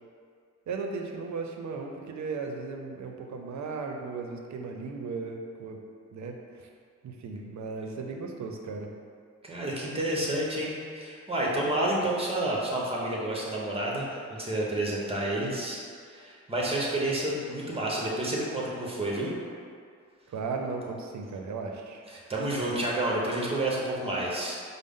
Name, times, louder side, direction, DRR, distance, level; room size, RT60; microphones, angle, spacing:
voice 1, 0.7-5.8 6.1-6.7 7.0-8.9 20.3-22.0, right 4 dB, 75° right, 3 dB, 0.5 m, -36 dB
voice 2, 9.4-19.3 22.1-24.6, right 1 dB, 20° right, -4 dB, 0.9 m, -30 dB
5.0 x 2.0 x 3.6 m, 2.2 s
cardioid pair, 75°, 29 cm